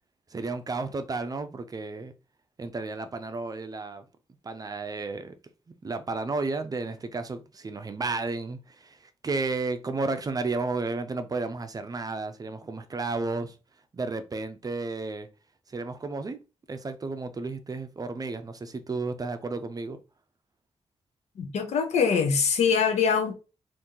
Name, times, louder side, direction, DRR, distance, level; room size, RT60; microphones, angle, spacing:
voice 1, 0.3-2.1 2.6-4.0 4.4-5.3 5.8-9.0 9.2-13.5 13.9-15.3 15.7-16.4 16.7-20.0, right 3 dB, 35° right, 0.5 m, -32 dB
voice 2, 21.4-23.3, left 6 dB, 90° left, 0.6 m, -23 dB
2.8 x 2.6 x 3.7 m
cardioid pair, 80°, 11 cm